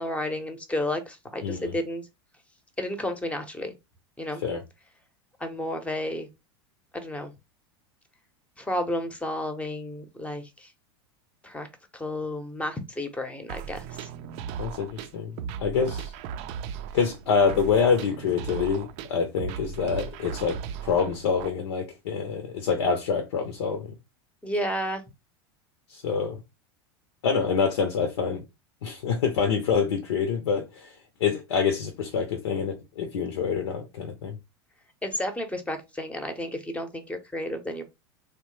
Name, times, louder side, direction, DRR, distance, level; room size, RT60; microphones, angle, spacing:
voice 1, 0.0-2.1 2.8-3.7 4.2-4.4 5.4-6.3 6.9-7.3 8.6-10.7 11.4-11.7 11.9-14.1 24.4-25.0 35.0-37.8, left 1 dB, 10° left, 0.7 m, -32 dB
voice 2, 1.4-1.7 4.4-4.6 14.6-16.1 16.9-23.9 25.9-26.4 27.2-28.4 28.8-30.9 31.2-34.4, left 6 dB, 80° left, 0.7 m, -26 dB
sound 1, 13.5-21.5, right 8 dB, 55° right, 0.4 m, -37 dB
3.0 x 2.1 x 3.1 m
hypercardioid pair, 100°, 14 cm